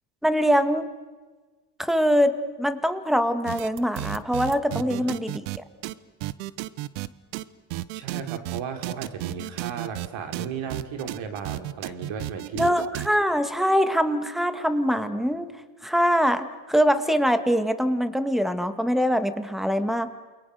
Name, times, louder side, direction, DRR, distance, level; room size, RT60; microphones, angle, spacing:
voice 1, 0.2-0.9 1.8-5.6 12.5-15.5 15.8-20.1, equal, ahead, 10 dB, 2.0 m, -23 dB
sound 1, 3.5-5.6 5.8-5.9 6.2-7.1 7.3-7.4 7.7-10.1 10.3-13.1, right 16 dB, 85° right, 1.1 m, -32 dB
voice 2, 4.7-5.2 7.9-12.8, right 6 dB, 65° right, 6 dB, 4.0 m, -35 dB
29.5 x 23.0 x 6.7 m, 1.3 s
supercardioid pair, 90°, 50 cm